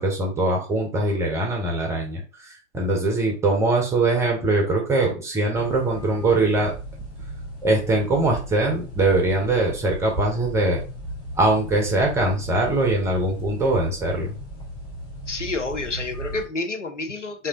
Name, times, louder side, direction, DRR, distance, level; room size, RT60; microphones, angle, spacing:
voice 1, 0.0-2.2 2.5-6.7 7.6-10.8 11.4-14.3, right 2 dB, 10° right, 1 dB, 0.6 m, -22 dB
sound 1, 5.5-16.5, right 1 dB, 15° left, 1.4 m, -36 dB
voice 2, 15.3-17.5, left 3 dB, 85° left, 5 dB, 0.8 m, -29 dB
3.2 x 2.7 x 3.6 m, 0.35 s
figure-of-eight pair, 110°, 35 cm